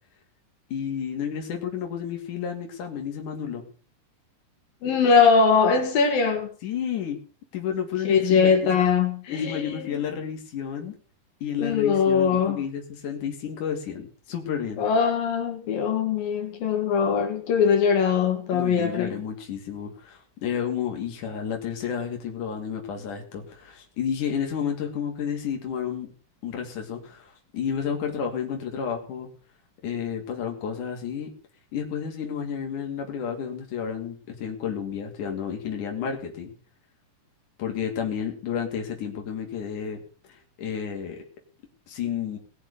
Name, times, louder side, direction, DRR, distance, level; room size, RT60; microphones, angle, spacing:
voice 1, 0.7-3.6 6.6-7.2 7.5-8.9 9.3-10.9 11.4-14.8 18.5-26.1 26.4-29.3 29.8-31.3 31.7-36.5 37.6-40.0 40.3-41.2 41.9-42.4, left 8 dB, 65° left, 4.0 m, -31 dB
voice 2, 4.8-6.5 8.1-10.0 11.6-12.6 14.8-19.2, left 6 dB, 85° left, 3.9 m, -21 dB
20.0 x 6.9 x 6.7 m
omnidirectional pair, 3.9 m